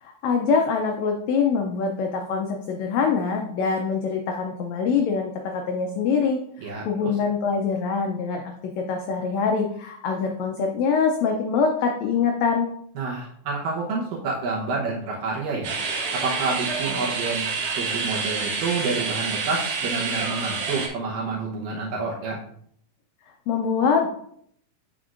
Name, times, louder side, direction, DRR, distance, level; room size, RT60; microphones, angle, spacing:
voice 1, 0.0-12.7 23.5-24.1, left 5 dB, 90° left, 3 dB, 1.5 m, -24 dB
voice 2, 6.6-7.1 13.0-15.8 16.1-22.4, right 3 dB, 80° right, -5 dB, 2.7 m, -29 dB
sound 1, 15.6-20.9, right 4 dB, 60° right, 1.7 m, -28 dB
8.0 x 5.8 x 2.5 m, 0.67 s
omnidirectional pair, 3.9 m